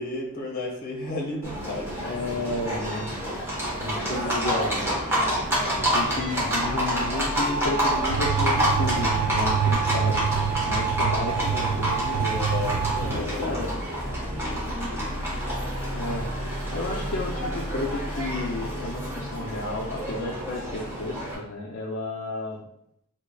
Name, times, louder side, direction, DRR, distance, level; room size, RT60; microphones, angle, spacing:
voice 1, 0.0-2.1 12.3-13.8 14.3-15.2, left 2 dB, 40° left, -2 dB, 1.0 m, -34 dB
Livestock farm animals working animals, 1.4-21.3, equal, 10° right, 1.1 m, -28 dB
voice 2, 2.0-3.1 3.8-4.7 5.9-10.3 10.6-12.3 13.1-13.7 15.9-16.3 16.7-22.6, left 2 dB, 55° left, -3 dB, 0.5 m, -32 dB
sound 1, 2.8-13.1, right 8 dB, 35° right, 1.1 m, -33 dB
sound 2, 8.1-13.2, right 7 dB, 90° right, 0.3 m, -28 dB
4.5 x 2.8 x 2.3 m, 0.76 s
head